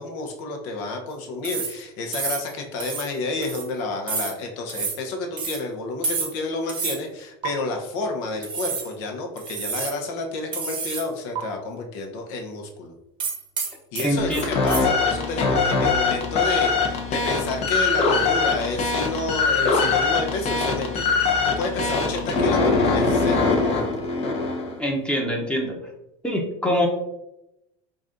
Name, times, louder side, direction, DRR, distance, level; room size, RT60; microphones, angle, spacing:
voice 1, 0.0-12.9 13.9-21.1 21.4-24.1, left 2 dB, 75° left, 3 dB, 0.9 m, -30 dB
sound 1, 1.4-1.8 2.1-2.5 2.8-3.1 3.4-3.7 4.1-4.4 4.7-5.0 5.4-5.6 6.0-6.4 6.7-7.0 7.4-7.5 8.4-8.9 9.4-10.0 10.5-11.1 11.3-11.4 13.2-14.8, right 5 dB, 35° right, 0.8 m, -29 dB
voice 2, 14.0-14.4 24.8-25.8 26.2-26.9, equal, 5° left, -1 dB, 0.8 m, -24 dB
sound 2, 14.2-24.8, left 4 dB, 45° left, 0.9 m, -22 dB
4.0 x 2.5 x 3.7 m, 0.88 s
supercardioid pair, 120°, 14 cm